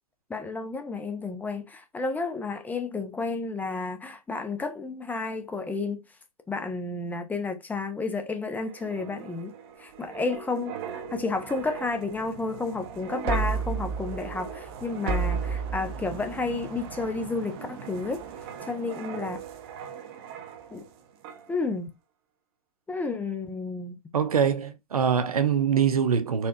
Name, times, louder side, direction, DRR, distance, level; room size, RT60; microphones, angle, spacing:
voice 1, 0.3-6.0 6.5-18.2 18.6-19.4 20.7-20.8 21.5-21.9 22.9-24.0, left 3 dB, 10° left, 0.5 m, -31 dB
sound 1, 8.6-20.9 21.2-21.5, right 5 dB, 45° right, 0.7 m, -35 dB
voice 2, 24.1-26.5, right 7 dB, 80° right, 0.6 m, -23 dB
4.2 x 2.3 x 2.7 m
hypercardioid pair, 110°, 19 cm